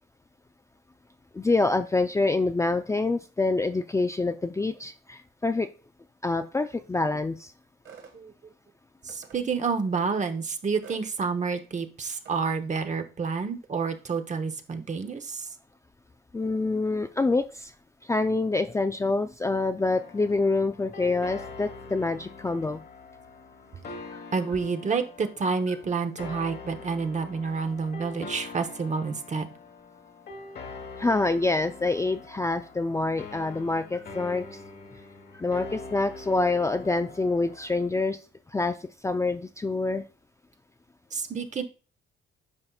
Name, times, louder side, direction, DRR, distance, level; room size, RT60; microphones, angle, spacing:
voice 1, 1.3-5.7 6.2-7.5 16.3-17.7 18.0-22.8 31.0-34.5 35.4-38.2 38.5-38.8 39.0-40.0, left 3 dB, 15° left, 7 dB, 0.4 m, -26 dB
sound 1, 7.8-8.2 9.1-9.4 10.8-11.1 12.2-12.4, right 6 dB, 70° right, 1.7 m, -47 dB
voice 2, 9.0-15.5 24.3-29.5 41.1-41.6, right 5 dB, 35° right, 9 dB, 0.9 m, -29 dB
sound 2, 19.9-37.9, left 3 dB, 55° left, 1.3 m, -44 dB
9.7 x 5.2 x 2.3 m, 0.35 s
cardioid pair, 90°, 20 cm